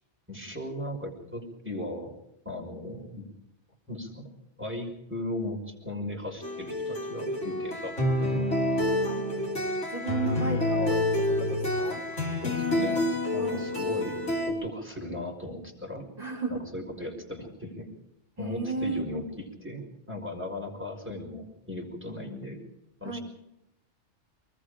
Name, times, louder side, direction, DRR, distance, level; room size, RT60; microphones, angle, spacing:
voice 1, 0.3-2.2 2.4-3.3 3.9-4.3 4.6-8.5 12.4-13.0 13.3-16.1 16.5-17.9 18.4-22.6 23.0-23.2, left 1 dB, 10° right, 0 dB, 5.9 m, -37 dB
sound 1, 6.4-14.5, left 1 dB, 90° left, 5.4 m, -28 dB
voice 2, 9.9-11.0 11.4-12.0 13.3-13.6 16.2-16.5 18.4-19.0 23.0-23.2, right 3 dB, 35° right, -3 dB, 5.1 m, -33 dB
28.0 x 20.5 x 5.2 m, 0.80 s
omnidirectional pair, 1.2 m